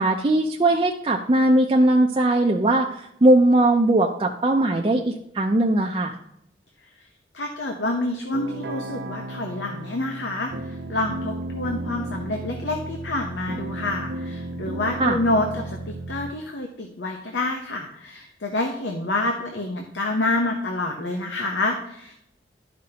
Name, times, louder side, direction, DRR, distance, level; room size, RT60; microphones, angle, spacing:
voice 1, 0.0-6.2 15.0-15.2, right 1 dB, 30° right, 0 dB, 0.5 m, -19 dB
voice 2, 7.3-22.1, left 2 dB, 85° left, 3 dB, 0.8 m, -27 dB
sound 1, 8.3-16.3, right 1 dB, 75° right, 0.6 m, -34 dB
12.5 x 5.1 x 2.8 m, 0.77 s
head